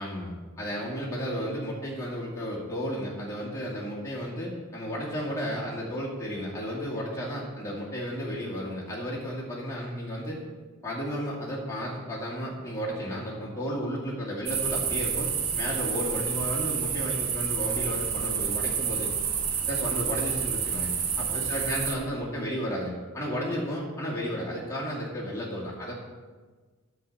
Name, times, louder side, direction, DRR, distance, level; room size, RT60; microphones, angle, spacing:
voice 1, 0.0-10.4 10.8-19.1 19.7-20.9 21.1-25.9, equal, 15° left, -6 dB, 2.2 m, -33 dB
sound 1, 14.5-21.9, right 7 dB, 70° right, 1.0 m, -29 dB
12.0 x 4.2 x 7.2 m, 1.4 s
head